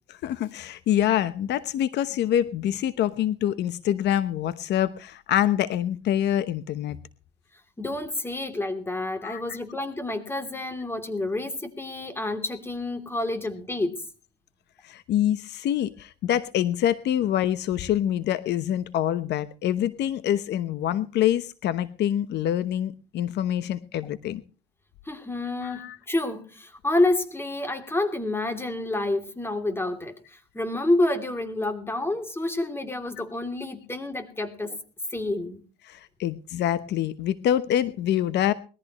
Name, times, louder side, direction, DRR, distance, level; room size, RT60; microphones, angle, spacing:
voice 1, 0.1-7.0 9.2-9.4 14.8-24.4 25.6-26.0 35.9-38.5, left 11 dB, 70° left, 14 dB, 1.0 m, -26 dB
voice 2, 7.8-14.0 25.1-34.8 35.1-35.6, left 2 dB, 15° left, 8 dB, 3.0 m, -28 dB
21.5 x 14.5 x 3.1 m, 0.37 s
cardioid pair, 115°, 18 cm